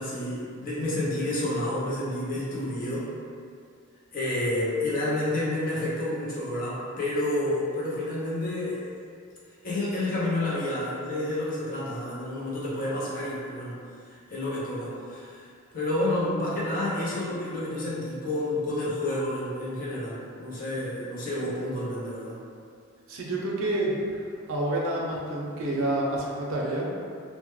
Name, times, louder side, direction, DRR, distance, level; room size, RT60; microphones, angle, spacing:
voice 1, 0.0-3.1 4.1-8.9 9.6-13.8 14.1-15.4 15.7-22.4, left 1 dB, 40° left, -7 dB, 0.5 m, -29 dB
voice 2, 23.1-24.2 24.5-26.9, right 1 dB, 80° right, -3 dB, 0.5 m, -28 dB
2.1 x 2.1 x 2.9 m, 2.3 s
head